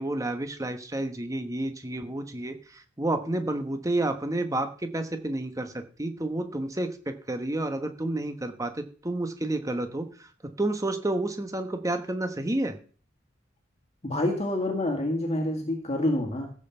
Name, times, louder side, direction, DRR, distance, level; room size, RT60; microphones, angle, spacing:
voice 1, 0.0-10.1 10.6-12.7, right 1 dB, 15° right, 7 dB, 1.1 m, -30 dB
voice 2, 14.0-16.5, left 1 dB, 35° left, 2 dB, 1.7 m, -27 dB
15.0 x 5.5 x 6.9 m, 0.42 s
head